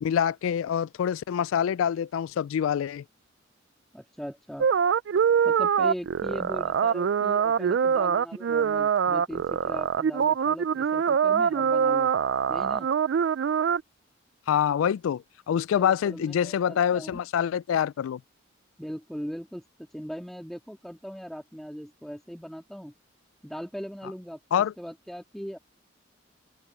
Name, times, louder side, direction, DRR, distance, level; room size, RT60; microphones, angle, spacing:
voice 1, 0.0-3.0 14.5-18.2 24.5-24.7, left 8 dB, 85° left, 0.3 m, -26 dB
voice 2, 3.9-4.7 5.4-12.1 12.5-12.9 15.7-17.2 18.8-22.9 23.4-25.6, equal, ahead, 2.3 m, -39 dB
sound 1, 4.6-13.8, right 7 dB, 65° right, 0.3 m, -24 dB
head